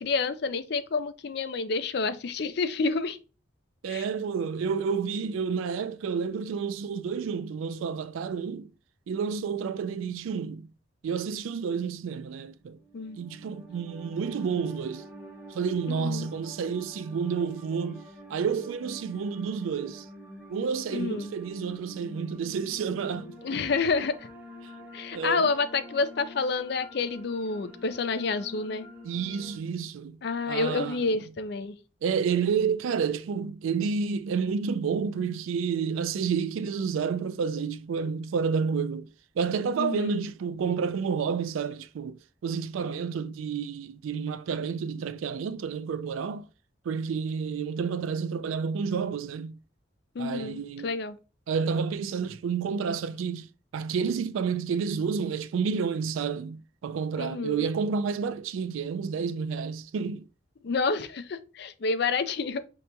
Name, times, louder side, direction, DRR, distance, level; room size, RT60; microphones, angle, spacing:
voice 1, 0.0-3.2 3.9-4.1 12.9-13.2 15.9-16.3 20.9-21.3 23.4-24.3 24.9-28.9 30.2-31.8 39.8-40.2 50.2-51.2 57.2-57.7 60.6-62.6, left 4 dB, 55° left, 0.4 m, -29 dB
voice 2, 3.8-8.7 9.1-10.7 11.0-12.8 13.2-15.1 15.5-18.0 18.3-20.1 20.5-23.6 25.1-25.5 29.0-30.2 30.5-31.2 32.0-46.5 46.8-49.6 50.2-50.9 51.5-60.2, right 6 dB, 85° right, 0.3 m, -30 dB
sound 1, 12.6-29.6, equal, 5° right, 1.0 m, -47 dB
5.2 x 2.9 x 2.2 m
head